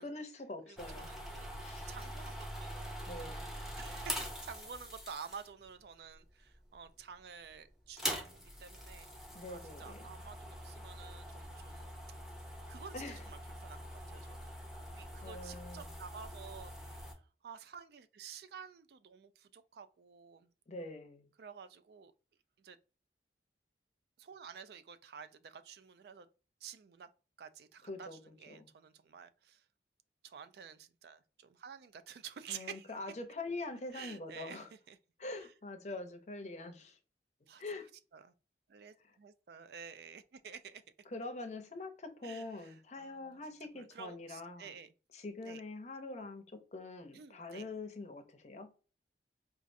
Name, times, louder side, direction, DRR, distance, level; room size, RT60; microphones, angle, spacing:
voice 1, 0.0-1.1 1.6-1.9 3.1-3.5 9.3-10.1 12.9-13.3 15.2-15.9 20.7-21.3 27.8-28.7 32.5-34.7 35.2-37.0 37.6-37.9 39.0-39.2 41.1-44.7 45.1-48.7, left 2 dB, 40° left, 0.6 m, -44 dB
voice 2, 0.7-1.5 1.9-3.0 3.8-9.1 9.5-11.9 12.7-13.0 13.2-13.8 14.1-14.5 14.9-16.7 17.4-20.5 21.4-22.1 22.6-22.8 24.2-26.3 26.6-27.1 27.4-28.1 28.4-29.6 30.2-32.9 33.9-34.6 34.9-35.0 37.5-37.6 38.1-38.3 38.7-40.8 42.2-43.4 43.7-44.9 45.5-45.6 47.1-47.7, right 7 dB, 60° right, 0.3 m, -50 dB
sound 1, 0.8-5.7 6.4-6.9 7.2-7.3 7.8-17.1, equal, 5° right, 0.6 m, -44 dB
4.4 x 2.4 x 2.5 m
head